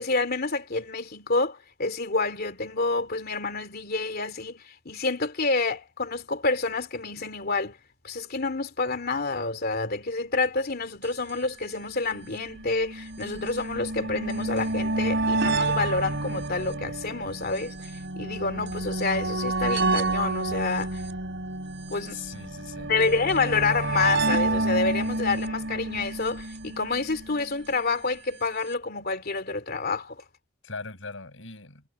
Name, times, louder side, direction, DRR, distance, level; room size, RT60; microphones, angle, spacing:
voice 1, 0.0-7.8 8.0-21.0 21.9-22.3 22.9-30.2, left 3 dB, 50° left, 2.8 m, -28 dB
sound 1, 11.0-11.1 11.3-11.4 12.2-27.5 28.5-28.6 28.7-28.8, right 2 dB, 65° right, 3.7 m, -29 dB
voice 2, 22.1-22.9 30.6-31.8, left 4 dB, 75° left, 7.4 m, -40 dB
head